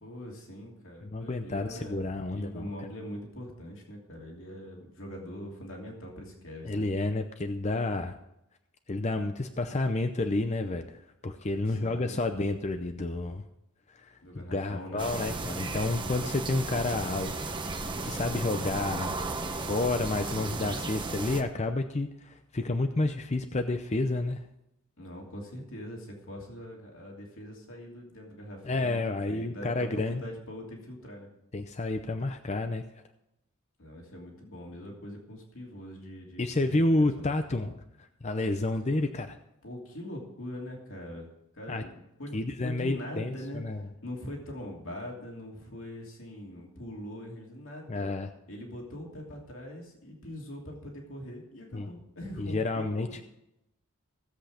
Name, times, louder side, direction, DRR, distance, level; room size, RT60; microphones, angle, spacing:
voice 1, 0.0-2.0 2.3-6.9 11.7-12.2 14.2-15.0 25.0-31.3 33.8-37.3 39.6-41.3 41.5-48.1 48.5-53.2, left 1 dB, 60° left, -1 dB, 2.9 m, -42 dB
voice 2, 1.0-2.7 6.6-8.1 8.9-13.4 13.9-17.6 18.0-19.2 19.7-24.4 28.6-30.2 31.5-32.8 36.4-39.4 41.7-41.8 42.3-43.8 47.9-48.3 51.7-51.9 52.4-53.2, left 2 dB, 30° left, 7 dB, 0.6 m, -30 dB
sound 1, 15.0-21.4, right 3 dB, 20° right, 1.0 m, -34 dB
16.0 x 8.0 x 5.1 m, 0.86 s
head